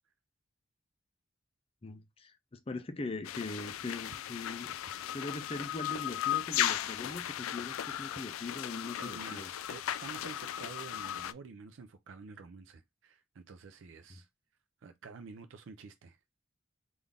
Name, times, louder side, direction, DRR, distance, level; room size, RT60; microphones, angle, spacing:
voice 1, 1.8-4.7 5.1-9.5 14.1-14.2, left 2 dB, 30° left, 0.5 m, -41 dB
sound 1, 3.2-11.3, left 11 dB, 90° left, 0.3 m, -36 dB
voice 2, 9.0-14.3 14.8-16.2, right 4 dB, 70° right, 0.4 m, -49 dB
3.8 x 2.5 x 3.4 m
head